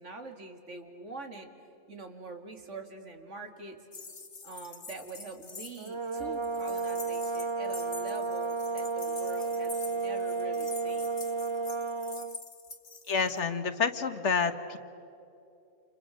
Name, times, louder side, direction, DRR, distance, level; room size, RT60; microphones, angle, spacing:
voice 1, 0.0-1.5 1.9-3.8 4.4-11.2, right 3 dB, 80° right, 5 dB, 2.7 m, -44 dB
sound 1, 3.9-13.4, left 4 dB, 55° left, 1.8 m, -46 dB
sound 2, 5.8-12.4, right 4 dB, 30° right, 0.6 m, -32 dB
voice 2, 13.1-14.8, left 5 dB, 70° left, 10 dB, 1.6 m, -28 dB
30.0 x 28.5 x 6.5 m, 2.7 s
omnidirectional pair, 1.2 m